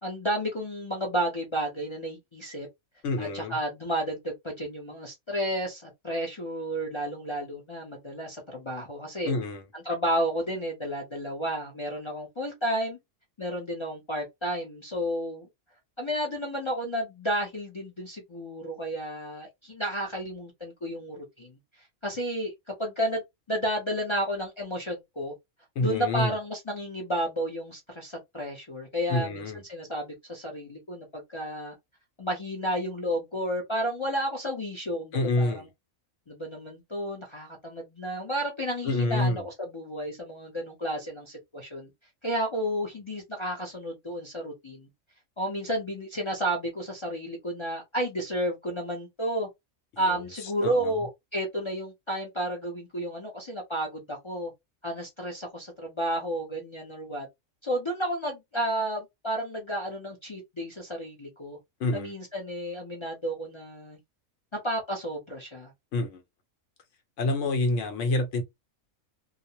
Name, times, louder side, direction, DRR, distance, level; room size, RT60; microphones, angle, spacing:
voice 1, 0.0-2.7 3.2-9.3 9.7-13.0 13.4-15.5 16.0-21.6 22.0-22.5 22.8-23.2 23.5-25.3 25.8-31.7 32.2-35.6 36.3-41.9 42.2-44.9 45.4-49.5 50.0-54.5 54.8-57.3 57.6-61.6 61.9-64.0 64.5-65.7, right 1 dB, 45° left, 0.4 m, -32 dB
voice 2, 3.0-3.6 9.2-9.6 25.8-26.3 29.1-29.6 35.1-35.6 38.8-39.5 50.0-51.0 61.8-62.1 65.9-66.2 67.2-68.4, left 2 dB, 65° left, 1.0 m, -28 dB
2.4 x 2.0 x 2.7 m
omnidirectional pair, 1.4 m